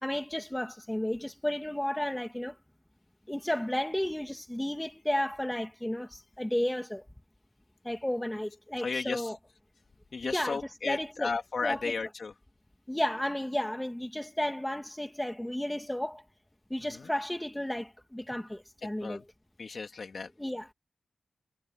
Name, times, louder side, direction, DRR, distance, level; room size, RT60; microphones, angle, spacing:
voice 1, 0.0-2.6 3.3-7.0 7.8-9.4 10.3-10.6 10.8-11.3 11.6-11.9 12.9-16.2 16.7-19.2 20.4-20.7, left 1 dB, 10° left, 2.6 m, -33 dB
voice 2, 8.8-9.3 10.1-12.3 16.9-17.1 19.0-19.2 19.6-20.3, left 4 dB, 65° left, 2.5 m, -34 dB
cardioid pair, 70°, 0 cm